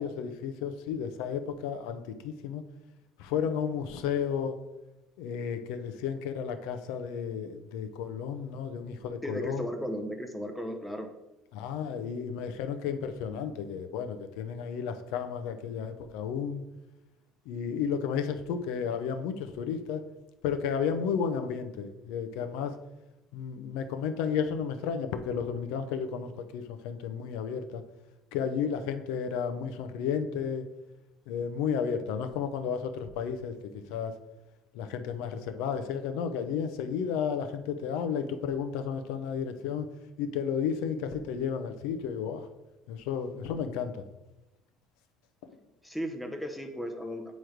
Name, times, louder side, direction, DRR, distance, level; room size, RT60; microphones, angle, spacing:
voice 1, 0.0-2.6 3.2-4.5 5.2-9.7 11.5-16.6 17.5-20.0 20.4-22.8 23.3-27.8 28.3-30.6 31.3-33.5 33.9-34.1 34.7-39.9 40.2-42.5 42.9-44.0, left 7 dB, 90° left, 9 dB, 0.6 m, -32 dB
voice 2, 9.2-11.1 45.8-47.3, equal, 5° left, 4 dB, 0.6 m, -35 dB
7.8 x 3.1 x 4.9 m, 1.0 s
cardioid pair, 160°, 0 cm